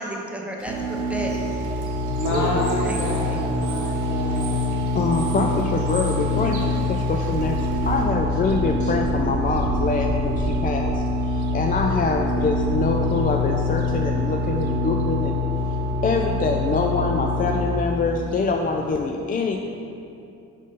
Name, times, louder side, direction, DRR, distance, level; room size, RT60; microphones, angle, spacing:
voice 1, 0.0-1.5 2.3-2.5 2.8-3.4, right 1 dB, 5° right, -1 dB, 0.7 m, -31 dB
Bird / Water, 0.6-8.0, right 3 dB, 80° right, 1.0 m, -41 dB
sound 1, 0.7-17.7, left 1 dB, 35° right, 1.0 m, -25 dB
voice 2, 2.2-4.5 5.3-5.7 8.8-8.9, left 1 dB, 70° left, -2 dB, 1.2 m, -28 dB
voice 3, 4.9-7.6 7.8-15.4 16.0-19.6, left 4 dB, 30° left, 2 dB, 0.4 m, -25 dB
sound 2, 6.5-19.0, right 2 dB, 60° right, 0.6 m, -35 dB
5.3 x 4.1 x 5.0 m, 2.6 s
cardioid pair, 90°, 30 cm